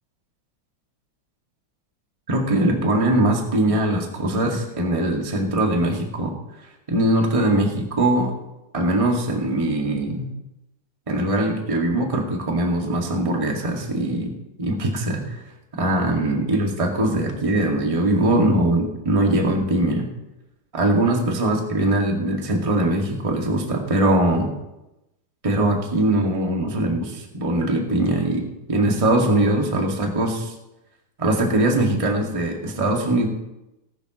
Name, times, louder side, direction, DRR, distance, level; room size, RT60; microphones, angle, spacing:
voice 1, 2.3-6.3 6.9-8.3 8.7-10.3 11.1-14.3 14.6-15.4 15.7-20.1 20.7-24.5 25.4-30.5 31.2-33.3, right 1 dB, 15° right, 0 dB, 1.5 m, -21 dB
19.0 x 11.5 x 3.1 m, 0.93 s
omnidirectional pair, 3.5 m